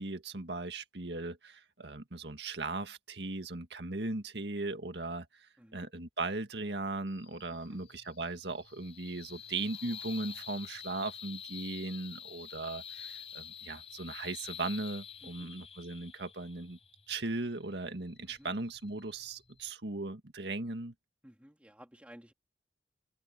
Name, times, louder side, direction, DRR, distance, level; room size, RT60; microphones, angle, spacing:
voice 1, 0.0-16.8 17.1-20.9, right 2 dB, 75° right, 1.9 m, -38 dB
voice 2, 5.6-5.9 7.5-7.8 15.2-15.5 18.3-18.5 21.2-22.3, equal, 10° right, 2.8 m, -55 dB
sound 1, 7.1-19.7, left 8 dB, 35° left, 5.1 m, -48 dB
open air
head